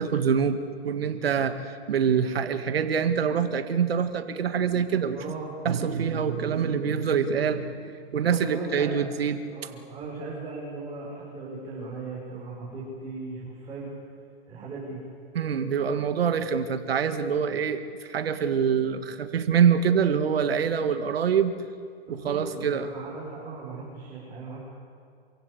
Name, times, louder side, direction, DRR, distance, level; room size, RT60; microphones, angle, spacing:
voice 1, 0.0-1.6 1.9-5.2 5.7-9.7 15.3-21.5 22.1-22.9, right 7 dB, 80° right, 9 dB, 1.9 m, -25 dB
voice 2, 5.1-5.6 8.1-9.0 9.5-13.9 14.5-15.0 17.4-17.6 22.1-24.6, right 3 dB, 15° right, -8 dB, 5.9 m, -37 dB
27.5 x 16.5 x 8.2 m, 2.2 s
hypercardioid pair, 145°, 30 cm